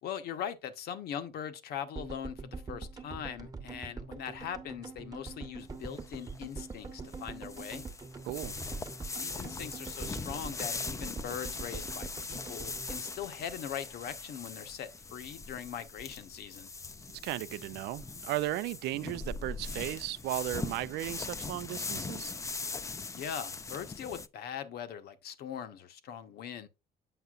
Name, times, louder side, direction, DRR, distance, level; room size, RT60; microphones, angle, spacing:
voice 1, 0.0-7.9 9.2-16.7 23.1-26.7, left 9 dB, 70° left, 1.0 m, -41 dB
sound 1, 1.9-14.2 14.4-14.5 14.7-14.8, right 4 dB, 20° right, 1.0 m, -44 dB
sound 2, 5.6-24.3, left 4 dB, 20° left, 0.4 m, -41 dB
voice 2, 8.2-8.6 17.2-22.3, right 16 dB, 80° right, 0.4 m, -35 dB
7.9 x 5.6 x 2.4 m
cardioid pair, 110°, 17 cm